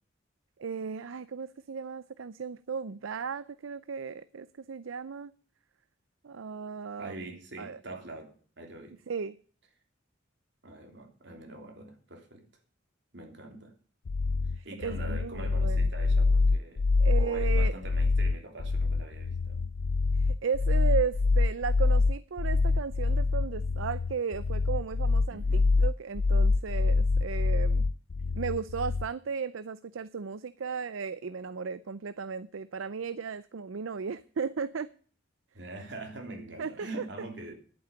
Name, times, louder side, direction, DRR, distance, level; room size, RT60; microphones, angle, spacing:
voice 1, 0.6-5.3 6.2-7.3 7.6-7.8 9.1-9.4 14.6-15.9 17.0-17.7 20.2-27.8 28.4-34.9 36.6-37.1, right 6 dB, 85° right, 0.5 m, -35 dB
voice 2, 7.0-9.0 10.6-12.4 13.1-13.7 14.4-16.9 17.2-19.6 25.3-25.6 35.5-37.5, right 2 dB, 60° right, 3.3 m, -44 dB
sound 1, 14.1-29.1, left 3 dB, 65° left, 0.5 m, -25 dB
11.0 x 9.0 x 6.9 m
head